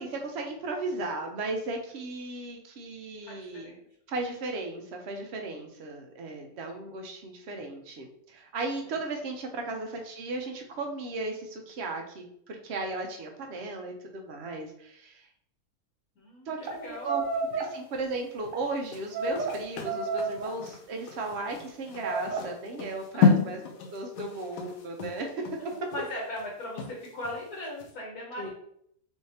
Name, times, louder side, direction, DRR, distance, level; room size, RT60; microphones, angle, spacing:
voice 1, 0.0-3.7 4.1-15.3 16.5-17.2 17.6-23.6 23.9-25.9 28.4-28.5, right 2 dB, 60° right, 3 dB, 0.7 m, -36 dB
voice 2, 3.2-3.8 6.5-6.9 8.8-8.9 16.2-17.2 17.5-17.7 23.1-23.4 25.9-28.5, left 1 dB, 70° left, -2 dB, 1.3 m, -39 dB
sound 1, 16.7-16.8 17.1-17.7 18.4-18.6 19.1-19.5 19.8-20.5 21.2-21.5 22.0-22.4, right 4 dB, 90° right, 1.4 m, -31 dB
sound 2, 18.8-27.4 27.8-27.9, left 5 dB, 90° left, 1.3 m, -30 dB
3.7 x 3.5 x 2.7 m, 0.68 s
omnidirectional pair, 1.7 m